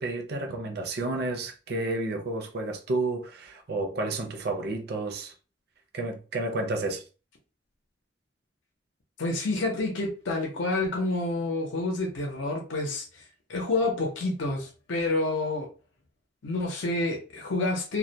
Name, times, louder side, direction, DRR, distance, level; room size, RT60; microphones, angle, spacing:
voice 1, 0.0-5.3 5.9-7.0, right 2 dB, 60° right, 0.5 m, -31 dB
voice 2, 9.2-13.2 13.5-15.7 16.4-18.0, left 2 dB, 85° left, 0.6 m, -28 dB
2.2 x 2.1 x 2.7 m
head